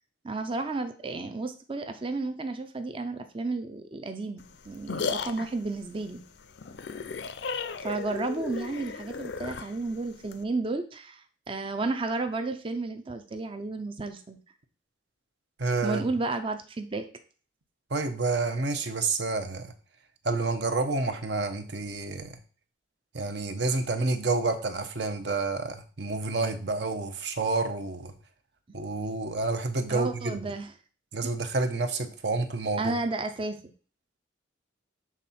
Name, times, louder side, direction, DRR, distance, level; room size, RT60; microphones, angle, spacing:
voice 1, 0.2-6.2 7.8-14.4 15.8-17.0 29.9-30.7 31.2-31.3 32.8-33.6, right 3 dB, 25° right, 7 dB, 0.5 m, -32 dB
sound 1, 4.4-10.4, left 4 dB, 65° left, 0.5 m, -35 dB
voice 2, 15.6-16.1 17.9-19.7 20.2-22.4 23.1-28.1 28.7-30.4 31.1-33.0, right 3 dB, 60° right, 8 dB, 0.8 m, -29 dB
7.3 x 3.6 x 4.2 m, 0.40 s
head